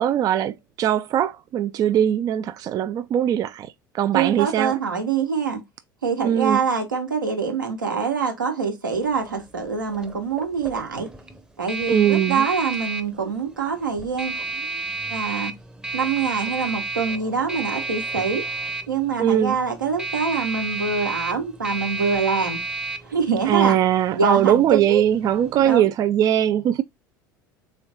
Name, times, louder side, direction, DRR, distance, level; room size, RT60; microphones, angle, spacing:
voice 1, 0.0-4.7 6.2-6.6 11.9-12.5 19.2-19.6 23.5-26.8, right 10 dB, 35° right, 0.3 m, -20 dB
voice 2, 4.1-5.6 6.0-11.1 11.6-14.8 15.1-15.5 15.9-18.4 18.9-22.6 23.0-23.8 24.1-25.0 25.6-25.9, right 5 dB, 85° right, 1.1 m, -25 dB
sound 1, 9.0-25.8, right 3 dB, 5° right, 0.7 m, -32 dB
3.7 x 3.1 x 3.9 m
figure-of-eight pair, 70°, 10 cm